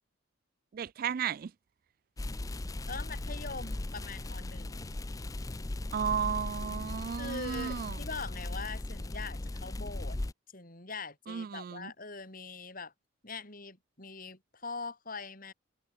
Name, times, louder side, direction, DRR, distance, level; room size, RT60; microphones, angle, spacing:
voice 1, 0.7-1.5 5.9-8.0 11.3-11.9, right 7 dB, 50° right, 0.3 m, -34 dB
sound 1, 2.2-10.3, left 2 dB, 20° left, 0.5 m, -38 dB
voice 2, 2.9-5.0 7.2-10.2 10.5-12.9 13.2-15.5, left 4 dB, 45° left, 6.2 m, -42 dB
head